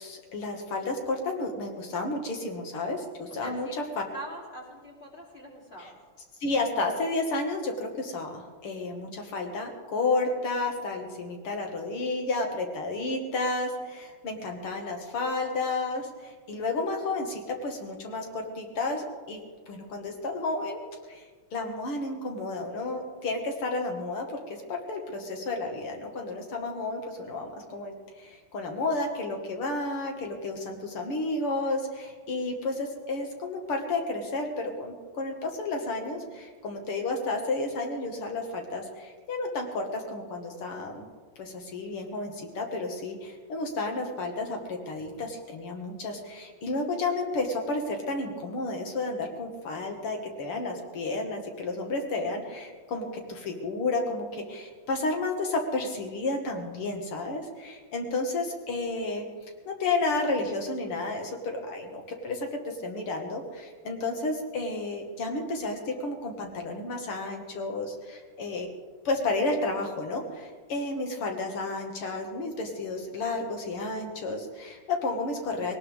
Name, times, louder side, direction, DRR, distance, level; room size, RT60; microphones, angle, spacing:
voice 1, 0.0-3.7 5.8-5.9 6.4-19.4 19.7-20.8 21.1-21.2 21.5-41.1 41.4-59.2 59.7-68.7 69.0-75.8, left 2 dB, 85° left, 2 dB, 2.8 m, -31 dB
voice 2, 3.4-3.7 4.1-6.0, right 1 dB, 25° left, -3 dB, 3.3 m, -42 dB
19.5 x 18.5 x 3.6 m, 1.5 s
omnidirectional pair, 2.4 m